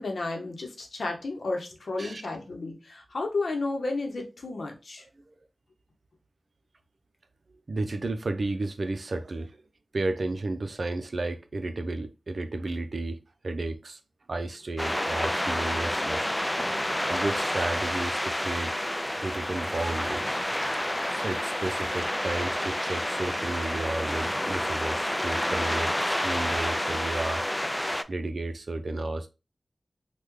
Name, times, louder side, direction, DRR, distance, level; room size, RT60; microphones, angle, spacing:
voice 1, 0.0-5.0, left 3 dB, 85° left, 0.8 m, -32 dB
voice 2, 7.7-9.6 9.9-13.2 13.4-14.0 14.3-16.3 17.1-18.7 19.2-20.4 21.1-27.7 28.1-29.3, right 2 dB, 70° right, 0.5 m, -33 dB
sound 1, 14.8-28.0, left 1 dB, 15° left, 0.3 m, -29 dB
3.4 x 2.2 x 3.1 m
cardioid pair, 45°, 0 cm